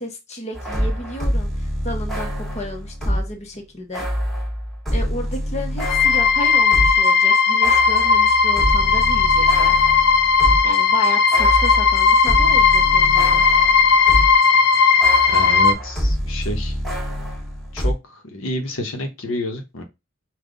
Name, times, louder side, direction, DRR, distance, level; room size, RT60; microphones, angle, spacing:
voice 1, 0.0-4.1 4.9-9.8 10.6-13.4, left 1 dB, 35° left, 1.0 m, -32 dB
sound 1, 0.5-3.4 3.9-7.1 7.3-14.5 14.7-17.9, equal, ahead, 1.4 m, -26 dB
sound 2, 5.8-15.7, left 5 dB, 55° left, 0.6 m, -16 dB
voice 2, 15.3-16.8 17.7-19.8, left 1 dB, 75° left, 0.9 m, -29 dB
5.4 x 2.4 x 3.8 m
head